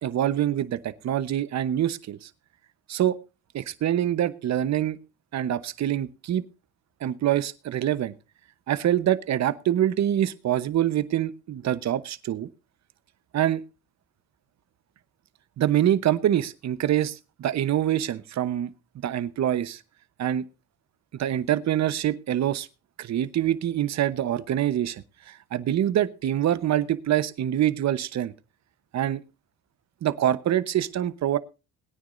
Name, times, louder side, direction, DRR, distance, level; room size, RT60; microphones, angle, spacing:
voice 1, 0.0-2.3 2.9-3.2 3.5-5.0 5.3-6.4 7.0-8.1 8.7-12.5 13.3-13.6 15.6-18.7 19.0-19.8 20.2-20.4 21.1-22.7 23.0-28.3 28.9-29.2 30.0-31.4, right 11 dB, 60° right, 15 dB, 1.0 m, -25 dB
21.5 x 9.6 x 2.6 m, 0.29 s
cardioid pair, 90°, 30 cm